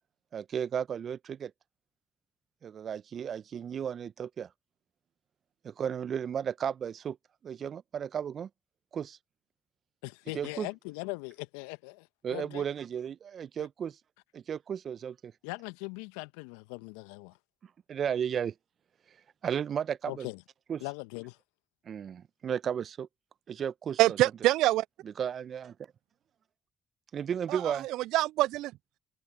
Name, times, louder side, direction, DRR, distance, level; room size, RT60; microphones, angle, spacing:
voice 1, 0.3-1.5 2.6-4.5 5.6-7.2 7.4-8.5 8.9-9.2 10.3-10.7 12.2-14.0 14.3-15.3 17.9-18.5 19.4-20.3 20.7-20.8 21.9-23.1 23.5-24.2 25.2-25.7 27.1-27.9, right 8 dB, 50° right, 1.2 m, -34 dB
voice 2, 10.0-12.6 13.6-13.7 15.4-17.4 20.1-20.4 20.8-21.4, left 27 dB, 75° left, 1.4 m, -40 dB
voice 3, 24.0-24.8 27.5-28.7, right 16 dB, 70° right, 0.3 m, -25 dB
hypercardioid pair, 45°, 0 cm